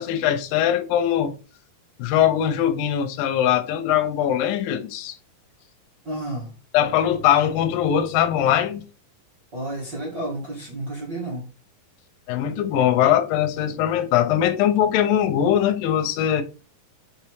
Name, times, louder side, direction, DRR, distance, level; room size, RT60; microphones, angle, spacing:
voice 1, 0.0-1.4 2.0-5.2 6.7-8.8 12.3-16.4, left 10 dB, 75° left, 2.4 m, -21 dB
voice 2, 6.0-6.5 9.5-11.4, right 1 dB, 35° right, 2.3 m, -31 dB
5.9 x 4.7 x 4.7 m
omnidirectional pair, 4.3 m